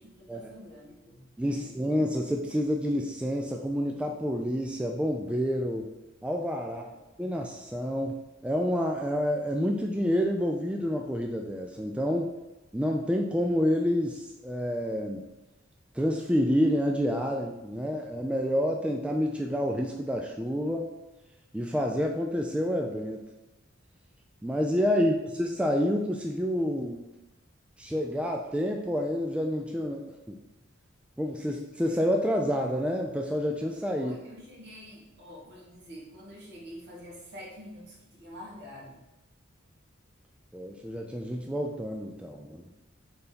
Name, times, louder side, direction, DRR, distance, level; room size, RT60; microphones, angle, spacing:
voice 1, 0.0-1.2 1.5-1.9 6.6-7.0 24.9-25.1 33.9-39.0, equal, 55° right, -4 dB, 2.0 m, -47 dB
voice 2, 1.4-5.9 6.2-6.8 7.2-8.2 8.4-12.3 12.7-15.2 15.9-20.9 21.5-23.2 24.4-27.0 27.8-30.4 31.2-34.2 40.5-42.7, equal, 5° right, 1 dB, 0.3 m, -28 dB
4.5 x 4.1 x 5.1 m, 1.0 s
head